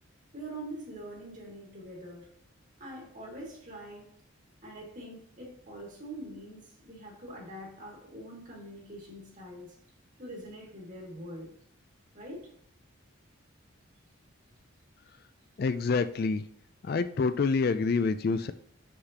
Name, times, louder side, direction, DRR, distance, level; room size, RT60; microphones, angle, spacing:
voice 1, 0.3-2.3 2.8-4.1 4.6-9.8 10.2-11.5 12.1-12.5, right 1 dB, 40° right, 2.2 m, -44 dB
voice 2, 15.6-16.4 16.8-18.5, left 4 dB, 45° left, 0.3 m, -27 dB
6.4 x 5.9 x 2.9 m
head